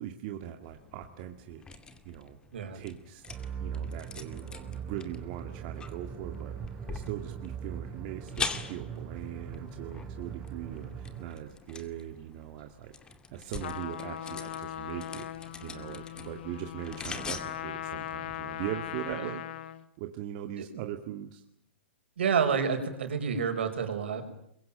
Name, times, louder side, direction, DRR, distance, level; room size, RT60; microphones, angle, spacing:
voice 1, 0.0-1.6 2.0-2.4 2.7-6.6 6.9-12.9 13.3-15.3 15.6-19.4 20.0-21.4, right 12 dB, 45° right, 5 dB, 2.2 m, -40 dB
sound 1, 0.6-19.2, left 5 dB, 15° left, 2.3 m, -44 dB
sound 2, 3.3-11.5, right 7 dB, 20° right, 5.1 m, -40 dB
Trumpet, 13.6-19.9, left 11 dB, 65° left, 1.8 m, -39 dB
voice 2, 22.2-24.2, right 6 dB, 75° right, 6 dB, 5.7 m, -29 dB
26.5 x 23.0 x 9.0 m, 0.72 s
hypercardioid pair, 135°, 6 cm